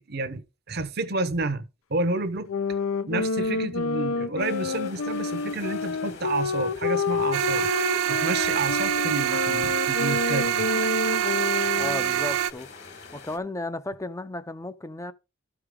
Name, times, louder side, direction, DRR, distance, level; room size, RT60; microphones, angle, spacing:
voice 1, 0.0-2.5 3.1-7.7 8.1-10.6, right 2 dB, 50° right, 0.9 m, -30 dB
sound 1, 2.5-12.1, left 4 dB, 85° left, 0.7 m, -29 dB
sound 2, 4.4-13.4, left 4 dB, 55° left, 1.5 m, -43 dB
sound 3, 7.3-12.5, right 10 dB, 75° right, 0.4 m, -25 dB
voice 2, 11.8-12.7 13.1-15.1, left 2 dB, 15° left, 0.5 m, -34 dB
13.0 x 4.9 x 3.7 m
head